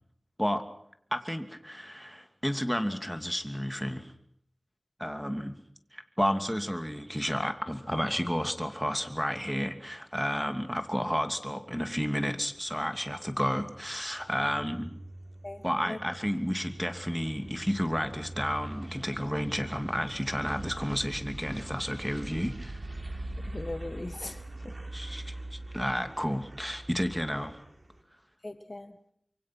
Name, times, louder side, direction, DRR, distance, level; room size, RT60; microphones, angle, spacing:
voice 1, 1.1-4.1 5.0-5.5 5.9-14.9 15.6-22.8 24.9-27.6, equal, ahead, 7 dB, 2.8 m, -31 dB
sound 1, 12.4-28.0, right 1 dB, 50° right, 3.8 m, -43 dB
voice 2, 15.4-16.0 23.5-24.7 28.4-29.0, left 2 dB, 45° left, 9 dB, 1.5 m, -40 dB
26.0 x 23.5 x 6.1 m, 0.69 s
wide cardioid pair, 40°, 0 cm